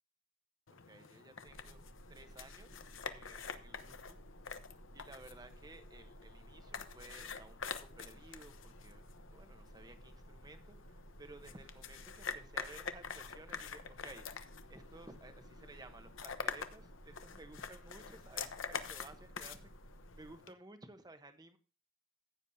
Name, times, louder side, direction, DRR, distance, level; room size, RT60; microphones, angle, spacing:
sound 1, 0.7-20.5, left 6 dB, 70° left, 0.9 m, -47 dB
voice 1, 0.9-1.8 2.1-4.2 4.9-14.2 14.7-19.7 20.1-21.6, right 2 dB, 20° right, 7 dB, 1.0 m, -56 dB
sound 2, 1.5-20.4, right 1 dB, 90° right, 0.9 m, -57 dB
15.0 x 9.2 x 2.8 m, 0.32 s
head